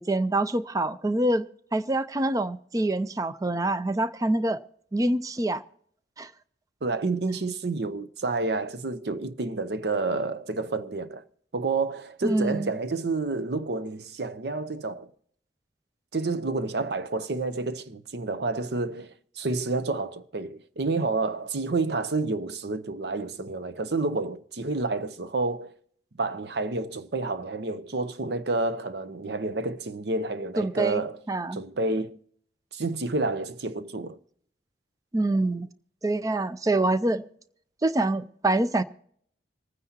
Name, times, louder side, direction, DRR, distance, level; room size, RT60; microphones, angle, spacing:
voice 1, 0.0-4.6 4.9-5.6 6.2-6.3 12.2-12.8 30.6-31.0 31.3-31.6 35.1-35.7 36.0-37.2 37.8-38.8, right 2 dB, 20° right, 0.4 m, -25 dB
voice 2, 6.8-11.2 11.5-15.1 16.1-25.7 26.2-31.2 31.5-32.2 32.7-34.2, right 3 dB, 65° right, 0.7 m, -29 dB
26.5 x 9.5 x 2.8 m
head